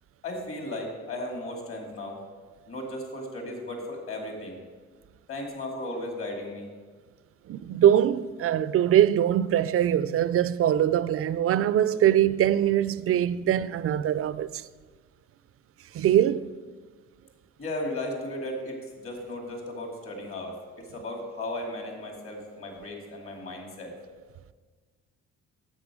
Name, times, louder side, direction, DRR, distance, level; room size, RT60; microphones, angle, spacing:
voice 1, 0.2-2.2 2.7-4.6 5.3-6.7 17.6-23.9, left 1 dB, 45° left, 2.4 m, -35 dB
voice 2, 7.5-14.6 15.9-16.6, right 11 dB, 50° right, 0.4 m, -23 dB
9.9 x 7.7 x 5.0 m
cardioid pair, 90°, 30 cm